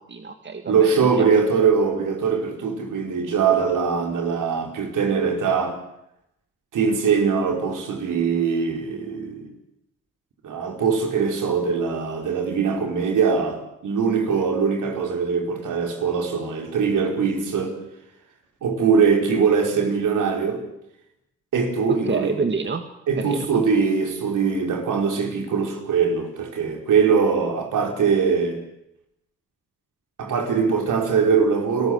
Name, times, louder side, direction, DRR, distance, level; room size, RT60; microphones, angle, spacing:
voice 1, 0.0-0.9 1.2-1.3 22.1-22.8 23.2-23.6, right 4 dB, 35° right, 7 dB, 2.0 m, -27 dB
voice 2, 0.7-5.8 6.7-9.5 10.4-17.8 18.6-20.6 21.5-22.3 23.1-28.6 30.2-31.9, right 5 dB, 65° right, 2 dB, 4.7 m, -22 dB
29.0 x 13.5 x 8.0 m, 0.84 s
supercardioid pair, 55°, 33 cm